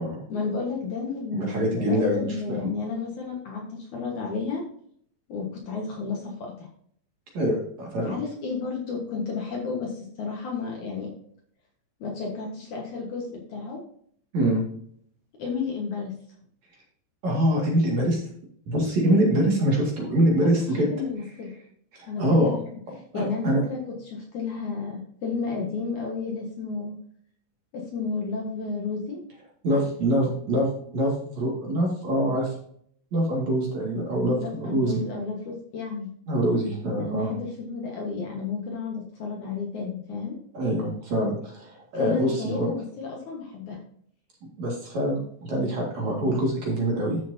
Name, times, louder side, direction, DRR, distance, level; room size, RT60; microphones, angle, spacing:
voice 1, 0.3-4.6 5.3-6.7 8.0-11.1 12.0-13.8 15.4-16.1 20.6-21.5 22.1-22.6 23.1-23.8 24.1-27.0 27.7-29.2 29.7-29.8 34.4-36.1 37.0-40.4 42.0-43.8, left 4 dB, 60° left, -1 dB, 2.3 m, -32 dB
voice 2, 1.3-2.6 7.3-8.2 14.3-14.6 17.2-18.2 18.7-20.9 21.9-22.5 23.1-23.6 29.6-32.6 33.1-35.0 36.3-37.3 40.5-42.7 44.4-47.2, right 1 dB, 45° right, -2 dB, 3.0 m, -24 dB
13.5 x 6.3 x 2.8 m, 0.63 s
omnidirectional pair, 5.0 m